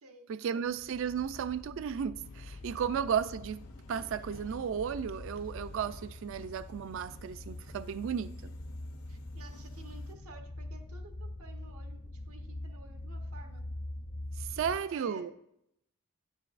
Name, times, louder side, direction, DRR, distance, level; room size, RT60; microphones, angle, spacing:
voice 1, 0.3-3.6 3.9-8.3 14.4-15.3, right 7 dB, 60° right, 0.3 m, -34 dB
sound 1, 0.6-14.8, left 1 dB, 35° left, 0.4 m, -44 dB
Subway metro underground, 2.2-10.1, left 2 dB, 80° left, 0.9 m, -58 dB
voice 2, 9.1-13.7 14.5-15.2, right 3 dB, 90° right, 1.1 m, -53 dB
9.6 x 8.0 x 2.5 m
head